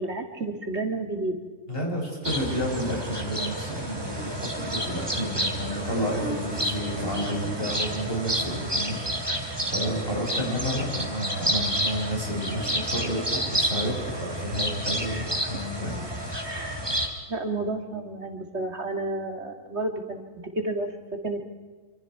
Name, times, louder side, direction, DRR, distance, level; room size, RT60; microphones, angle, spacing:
voice 1, 0.0-1.4 10.0-10.5 15.1-15.3 16.4-17.0 17.3-21.4, right 2 dB, 55° right, 5 dB, 2.4 m, -31 dB
voice 2, 1.7-16.4, equal, 45° left, -1 dB, 6.5 m, -31 dB
sound 1, 2.2-17.1, equal, 20° right, 3.1 m, -30 dB
27.0 x 26.5 x 4.6 m, 1.4 s
omnidirectional pair, 1.3 m